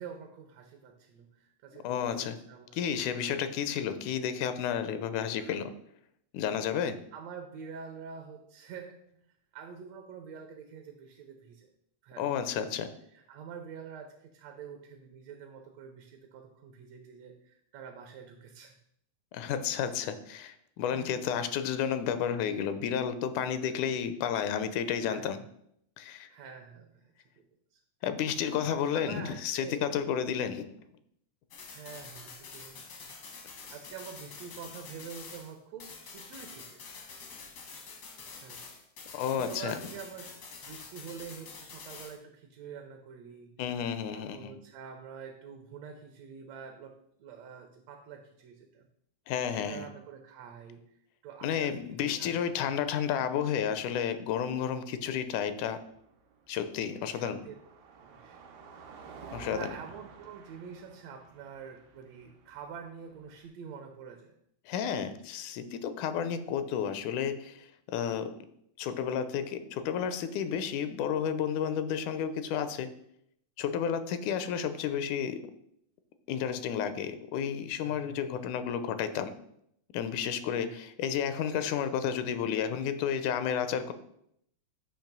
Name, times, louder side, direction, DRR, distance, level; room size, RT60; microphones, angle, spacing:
voice 1, 0.0-3.5 5.4-5.5 7.1-9.3 9.5-11.7 12.0-12.7 13.1-18.7 20.9-21.4 23.7-23.8 25.0-25.5 26.0-27.5 27.7-27.8 28.4-30.0 31.7-37.0 38.2-38.6 39.3-43.5 44.1-48.9 49.5-52.6 57.0-57.5 58.0-58.4 59.5-64.4 77.8-78.2 80.5-80.8, right 6 dB, 75° right, 4 dB, 1.8 m, -47 dB
voice 2, 1.8-2.4 2.7-5.7 6.3-7.0 12.2-12.9 19.3-25.4 26.0-26.3 28.0-30.7 39.1-39.8 43.6-44.5 49.3-49.9 51.4-55.8 56.5-57.4 59.3-59.7 64.7-68.3 68.8-72.9 73.6-75.4 76.3-79.3 79.9-83.9, left 8 dB, 85° left, 10 dB, 2.1 m, -31 dB
sound 1, 31.5-35.5 35.8-42.2, left 5 dB, 70° left, 1.0 m, -47 dB
Car passing by, 55.2-63.5, right 5 dB, 90° right, 2.3 m, -52 dB
8.8 x 3.0 x 5.9 m, 0.73 s
omnidirectional pair, 3.4 m